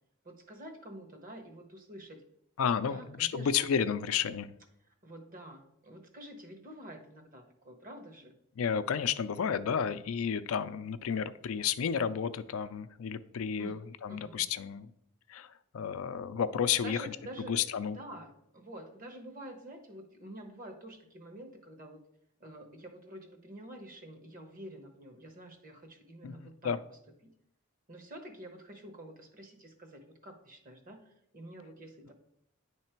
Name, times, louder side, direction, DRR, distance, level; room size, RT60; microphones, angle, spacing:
voice 1, 0.2-2.2 2.9-3.5 5.0-8.3 13.6-13.7 14.1-14.4 16.8-22.0 22.4-27.3 27.9-32.1, right 1 dB, 45° right, 4 dB, 1.1 m, -48 dB
voice 2, 2.6-4.5 8.6-14.9 15.3-17.1 17.5-18.0 26.2-26.8, left 7 dB, 80° left, 12 dB, 0.4 m, -32 dB
9.6 x 3.3 x 4.4 m, 0.75 s
head